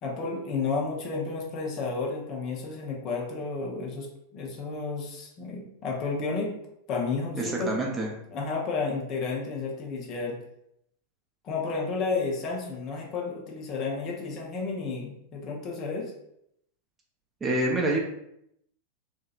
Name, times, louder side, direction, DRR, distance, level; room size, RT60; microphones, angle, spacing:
voice 1, 0.0-4.1 4.3-6.5 6.9-7.8 8.3-10.4 11.4-16.1, left 4 dB, 35° left, -1 dB, 0.6 m, -31 dB
voice 2, 7.4-8.1 17.4-18.0, right 1 dB, 20° right, -2 dB, 0.6 m, -26 dB
2.7 x 2.2 x 2.4 m, 0.77 s
figure-of-eight pair, 90°, 0 cm